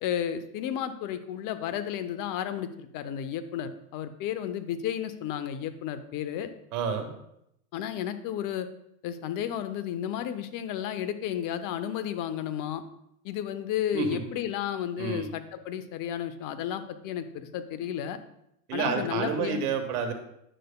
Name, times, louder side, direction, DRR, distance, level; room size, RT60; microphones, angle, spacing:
voice 1, 0.0-6.5 7.7-8.7 9.0-12.8 13.2-18.2 18.7-19.6, left 10 dB, 45° left, 11 dB, 0.8 m, -32 dB
voice 2, 6.7-7.1 13.9-14.2 14.9-15.3 18.7-20.1, right 6 dB, 70° right, 6 dB, 1.4 m, -29 dB
10.0 x 6.6 x 2.2 m, 0.78 s
hypercardioid pair, 105°, 46 cm